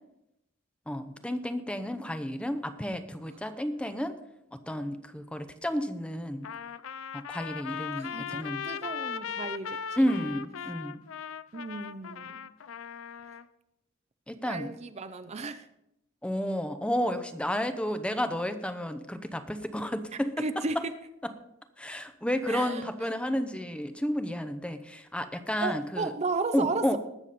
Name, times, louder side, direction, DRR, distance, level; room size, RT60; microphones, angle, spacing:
voice 1, 0.9-4.1 4.7-6.5 7.1-8.7 10.0-11.0 14.3-14.7 16.2-20.4 21.8-26.1 26.5-27.0, equal, 5° left, 10 dB, 0.7 m, -31 dB
Trumpet, 6.4-13.5, left 7 dB, 80° left, 0.5 m, -38 dB
voice 2, 8.0-10.1 11.5-12.5 14.5-15.7 20.4-20.9 22.5-22.9 25.6-27.0, right 3 dB, 35° right, 9 dB, 0.5 m, -34 dB
20.0 x 6.9 x 4.2 m, 0.84 s
head